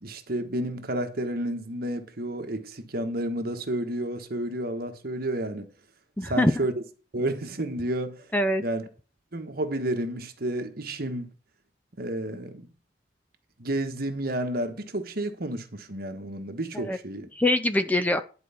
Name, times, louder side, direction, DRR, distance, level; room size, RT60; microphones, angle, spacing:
voice 1, 0.0-5.7 6.2-6.8 7.1-8.3 8.6-8.9 9.3-11.3 12.0-12.7 13.6-17.3, right 1 dB, 55° right, 1.4 m, -31 dB
voice 2, 6.2-6.5 8.3-8.6 16.7-17.0 17.4-18.2, left 1 dB, 10° left, 0.6 m, -23 dB
11.0 x 4.6 x 7.0 m
head